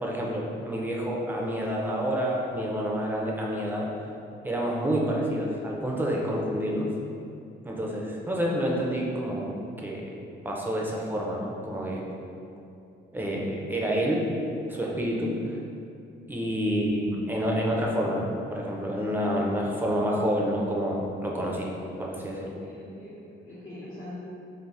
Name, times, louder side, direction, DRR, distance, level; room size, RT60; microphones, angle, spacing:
voice 1, 0.0-3.9 4.4-6.9 7.6-9.6 9.8-10.2 10.4-12.1 13.1-14.3 14.7-15.6 16.3-21.7 22.0-22.5, equal, 10° right, -2 dB, 0.4 m, -28 dB
voice 2, 16.3-16.6 22.4-24.1, left 1 dB, 75° left, -13 dB, 0.9 m, -44 dB
2.5 x 2.0 x 3.2 m, 2.6 s
cardioid pair, 90°, 20 cm